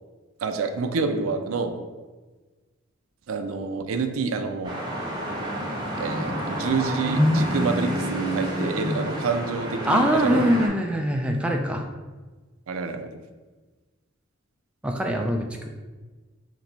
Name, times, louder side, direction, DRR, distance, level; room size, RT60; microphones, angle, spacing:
voice 1, 0.4-1.7 3.3-4.7 6.0-10.5 12.7-13.1, right 4 dB, 85° right, 7 dB, 0.4 m, -27 dB
sound 1, 4.6-10.7, equal, 20° right, 0.9 m, -27 dB
voice 2, 9.9-11.8 14.8-15.7, equal, 5° right, 2 dB, 0.3 m, -23 dB
3.3 x 3.0 x 4.0 m, 1.3 s
head